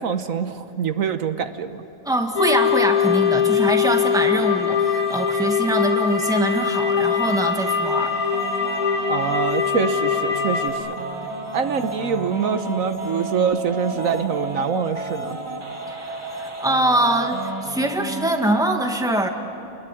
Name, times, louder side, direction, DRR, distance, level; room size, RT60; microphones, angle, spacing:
voice 1, 0.0-1.8 9.1-10.9 11.5-15.4, right 6 dB, 75° right, 9 dB, 1.4 m, -24 dB
voice 2, 2.0-8.1 15.9-19.3, right 1 dB, 5° right, 4 dB, 1.8 m, -23 dB
sound 1, 2.3-17.5, right 3 dB, 35° left, 2.4 m, -35 dB
sound 2, 2.4-10.7, left 7 dB, 85° left, 2.2 m, -22 dB
sound 3, 7.0-18.6, right 1 dB, 20° right, 1.8 m, -35 dB
28.5 x 21.0 x 10.0 m, 2.7 s
omnidirectional pair, 1.5 m